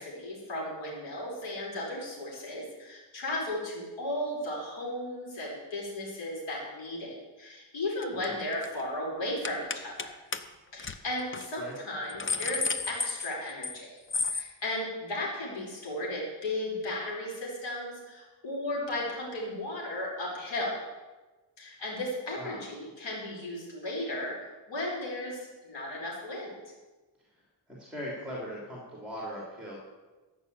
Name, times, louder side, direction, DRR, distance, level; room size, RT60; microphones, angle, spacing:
voice 1, 0.0-10.1 10.7-13.9 14.3-20.7 21.6-26.5, left 1 dB, 90° left, -4 dB, 5.1 m, -35 dB
sound 1, 8.0-8.3 8.5-8.8 9.4-10.1 10.3-10.4 10.8-11.0 11.3-11.5 11.9-13.8 14.1-14.5, left 4 dB, 30° left, 0.7 m, -32 dB
voice 2, 27.7-29.8, equal, ahead, -4 dB, 3.0 m, -40 dB
14.0 x 6.1 x 8.2 m, 1.2 s
wide cardioid pair, 125°, 43 cm